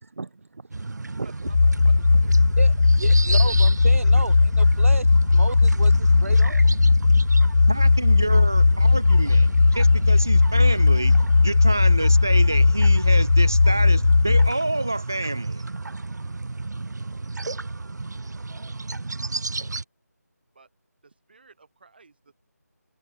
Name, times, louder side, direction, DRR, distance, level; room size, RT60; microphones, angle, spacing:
voice 1, 0.0-1.5 2.6-5.1 5.3-6.7, right 3 dB, 50° right, 0.7 m, -34 dB
sound 1, 0.7-19.8, right 3 dB, 90° right, 0.5 m, -33 dB
voice 2, 1.2-2.5 3.1-3.6 20.5-20.7 21.0-22.3, right 4 dB, 35° right, 7.3 m, -52 dB
sound 2, 1.5-14.5, left 3 dB, 80° left, 0.4 m, -17 dB
voice 3, 7.7-11.2 11.4-15.6, right 2 dB, 10° right, 0.3 m, -28 dB
figure-of-eight pair, 175°, 9 cm